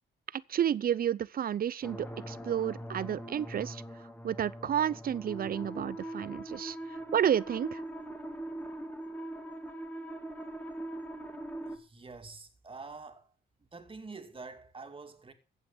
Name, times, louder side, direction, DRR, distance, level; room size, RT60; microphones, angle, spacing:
voice 1, 0.3-3.8 4.2-6.8 7.1-7.8, right 9 dB, 50° right, 0.6 m, -31 dB
sound 1, 1.8-11.8, right 1 dB, 10° left, 2.4 m, -41 dB
voice 2, 11.7-13.3 13.6-15.3, right 4 dB, 25° right, 2.4 m, -47 dB
14.5 x 8.5 x 5.3 m
cardioid pair, 90°, 20 cm